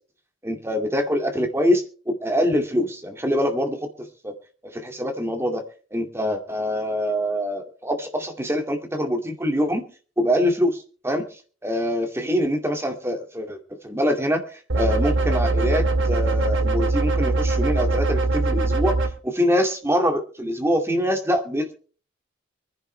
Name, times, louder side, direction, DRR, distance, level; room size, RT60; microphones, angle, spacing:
voice 1, 0.4-4.3 4.6-5.6 5.9-9.8 10.2-11.3 11.6-13.6 13.8-19.0 19.2-21.7, equal, 15° right, 4 dB, 2.3 m, -24 dB
sound 1, 14.7-19.1, right 2 dB, 75° right, 2.0 m, -22 dB
24.0 x 11.0 x 3.4 m, 0.39 s
head